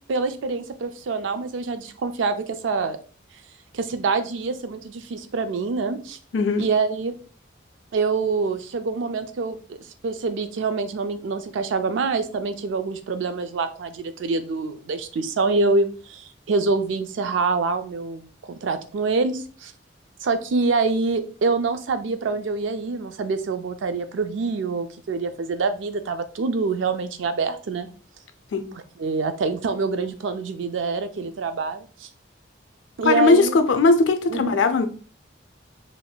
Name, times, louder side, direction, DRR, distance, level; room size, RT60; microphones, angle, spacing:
voice 1, 0.1-3.0 3.7-6.2 6.6-7.1 7.9-9.8 10.0-19.7 20.2-27.9 29.0-32.1 33.0-33.5 34.3-34.6, right 4 dB, 80° right, 0.4 m, -25 dB
voice 2, 6.3-6.6 28.5-28.7 33.0-34.9, left 3 dB, 80° left, 0.5 m, -18 dB
3.5 x 2.5 x 2.2 m
head